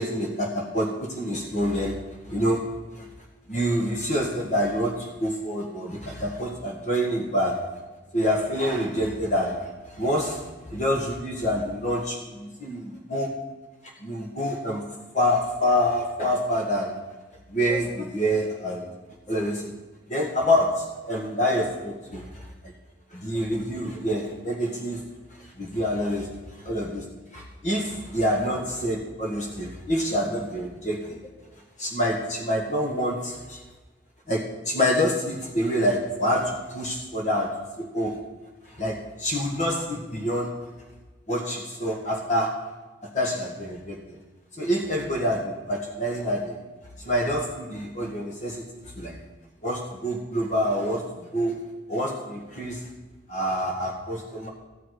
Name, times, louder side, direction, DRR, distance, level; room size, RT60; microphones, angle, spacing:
voice 1, 0.0-2.0 2.3-2.7 3.0-3.1 3.5-7.7 8.1-10.4 10.7-13.3 14.0-14.8 15.1-17.0 17.5-18.9 19.3-19.7 20.1-22.7 23.1-25.0 25.6-27.1 27.3-31.2 31.8-33.6 34.3-38.2 38.7-40.5 41.3-42.7 43.1-44.2 44.6-46.6 47.0-48.6 49.0-49.2 49.6-51.6 51.9-52.8 53.3-54.5, equal, 40° left, 0 dB, 1.8 m, -27 dB
13.5 x 5.8 x 9.5 m, 1.2 s
head